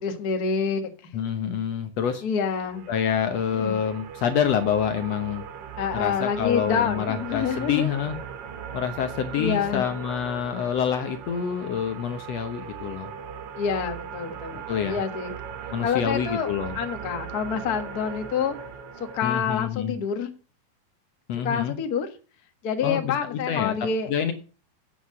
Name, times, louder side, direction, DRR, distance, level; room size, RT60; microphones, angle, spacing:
voice 1, 0.0-1.1 2.2-2.8 3.6-3.8 5.8-7.9 9.4-9.9 13.6-15.3 15.8-16.5 16.7-18.5 19.0-20.3 21.4-22.1 22.6-24.1, left 6 dB, 55° left, 6 dB, 1.0 m, -27 dB
voice 2, 1.1-2.2 2.9-5.4 5.9-8.1 8.7-13.1 14.7-15.0 15.7-16.7 19.2-20.0 21.3-21.7 22.8-23.8 24.1-24.3, left 8 dB, 75° left, 7 dB, 1.5 m, -27 dB
sound 1, 2.4-19.2, right 7 dB, 85° right, 1.2 m, -38 dB
8.4 x 7.7 x 7.5 m, 0.36 s
omnidirectional pair, 4.2 m